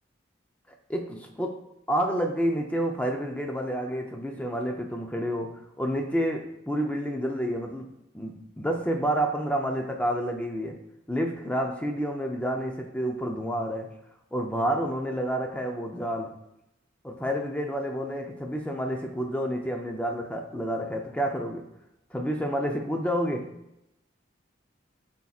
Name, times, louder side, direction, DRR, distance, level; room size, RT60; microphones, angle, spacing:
voice 1, 1.9-7.9 8.1-10.8 11.1-13.9 14.3-16.3 17.0-21.6 22.1-23.5, equal, 5° left, 2 dB, 0.5 m, -29 dB
12.0 x 4.1 x 2.4 m, 0.86 s
head